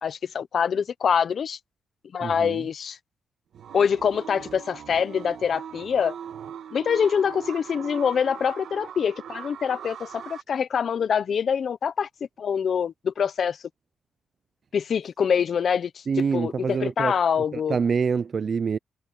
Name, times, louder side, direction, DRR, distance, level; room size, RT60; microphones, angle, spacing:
voice 1, 0.0-1.6 2.1-3.0 3.7-6.1 6.7-12.1 12.4-13.6 14.7-17.8, left 7 dB, 55° left, 1.0 m, -25 dB
voice 2, 2.2-2.6 16.1-17.2 17.5-18.8, right 6 dB, 45° right, 0.5 m, -26 dB
sound 1, 3.5-10.4, right 9 dB, 70° right, 2.6 m, -40 dB
cardioid pair, 120°, 0 cm